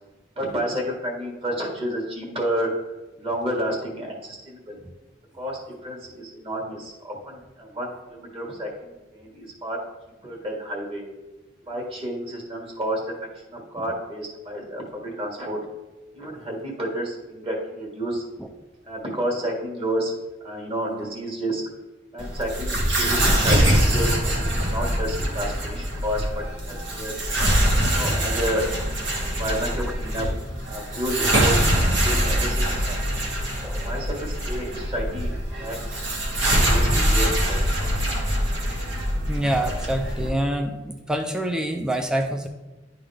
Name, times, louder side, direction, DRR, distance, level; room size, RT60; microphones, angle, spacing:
voice 1, 0.3-4.8 5.3-9.8 10.2-11.0 11.7-13.1 13.5-15.6 16.1-18.2 18.8-21.6 22.1-27.1 27.9-28.7 29.3-30.3 30.7-33.1 33.8-36.1 36.6-37.6, equal, 30° right, -2 dB, 1.7 m, -30 dB
sound 1, 22.2-40.3, equal, 75° right, 1.6 m, -23 dB
voice 2, 39.3-42.5, right 1 dB, 5° right, 4 dB, 0.4 m, -26 dB
10.5 x 3.9 x 3.3 m, 1.1 s
head